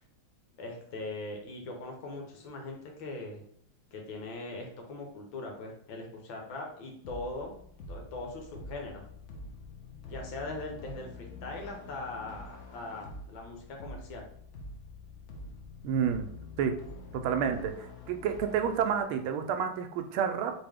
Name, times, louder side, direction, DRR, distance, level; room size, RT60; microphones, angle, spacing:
voice 1, 0.6-3.4 3.9-7.6 7.9-9.1 10.1-14.3, left 2 dB, 70° left, 1 dB, 1.7 m, -40 dB
sound 1, 7.0-19.0, left 2 dB, 90° left, 0.6 m, -46 dB
voice 2, 15.8-16.3 16.6-16.7 17.1-20.5, right 7 dB, 85° right, 7 dB, 1.4 m, -29 dB
4.3 x 3.5 x 3.5 m, 0.64 s
omnidirectional pair, 2.3 m